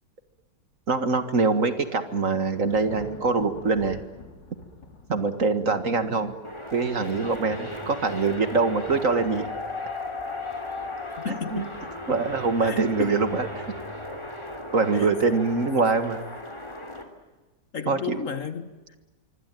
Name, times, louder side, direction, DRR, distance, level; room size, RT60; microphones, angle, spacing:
voice 1, 0.9-4.0 5.1-6.3 6.7-9.5 11.5-11.7 12.1-13.6 14.7-16.2 17.9-18.2, right 4 dB, 50° right, 2.1 m, -24 dB
Thunder, 2.0-7.4, left 2 dB, 85° left, 3.6 m, -46 dB
sound 1, 6.4-17.0, left 2 dB, 15° left, 3.2 m, -36 dB
voice 2, 11.2-11.7 12.6-13.2 14.9-15.1 17.7-19.0, left 6 dB, 50° left, 1.5 m, -33 dB
26.0 x 24.5 x 9.2 m
omnidirectional pair, 1.9 m